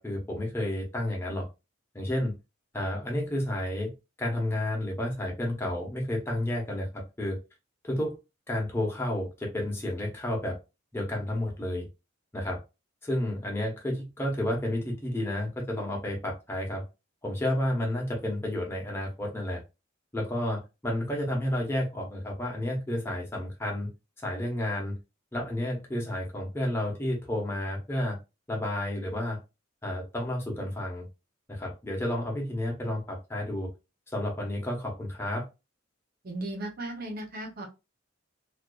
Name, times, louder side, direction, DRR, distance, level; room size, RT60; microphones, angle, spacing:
voice 1, 0.0-1.5 1.9-2.3 2.7-3.9 4.2-7.4 7.8-8.2 8.5-10.6 10.9-11.9 12.3-12.6 13.0-16.8 17.2-19.6 20.1-23.9 24.2-24.9 25.3-28.2 28.5-29.4 29.8-31.1 31.5-33.7 34.1-35.4, left 1 dB, 10° left, -1 dB, 0.7 m, -31 dB
voice 2, 36.2-37.7, right 1 dB, 50° right, 2 dB, 0.7 m, -36 dB
2.4 x 2.2 x 2.2 m, 0.26 s
head